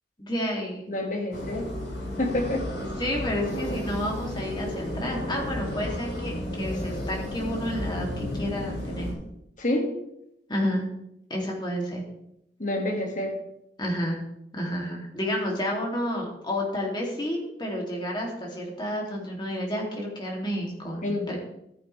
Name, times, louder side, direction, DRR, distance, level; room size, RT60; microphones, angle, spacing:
voice 1, 0.2-0.8 3.0-9.1 10.5-10.9 11.3-12.0 13.8-14.2 14.5-21.4, equal, 25° left, -1 dB, 2.7 m, -30 dB
voice 2, 0.9-1.7 2.2-2.7 9.6-9.9 12.6-13.3 21.0-21.4, left 1 dB, 45° left, 2 dB, 2.1 m, -27 dB
sound 1, 1.3-9.1, left 1 dB, 70° left, 3.6 m, -33 dB
13.5 x 9.5 x 3.4 m, 0.81 s
head